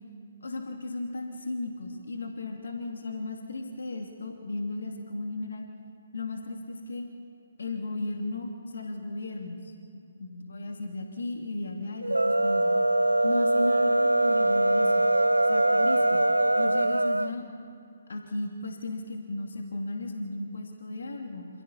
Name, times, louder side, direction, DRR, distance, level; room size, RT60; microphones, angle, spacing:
voice 1, 0.4-5.7 6.1-7.1 7.6-9.6 10.2-12.7 13.2-14.9 15.4-16.3 16.6-17.4 18.1-21.5, left 2 dB, 60° left, 2 dB, 2.6 m, -35 dB
sound 1, 12.0-17.3, right 1 dB, 80° right, 0.4 m, -23 dB
28.0 x 27.5 x 4.2 m, 2.6 s
figure-of-eight pair, 135°, 0 cm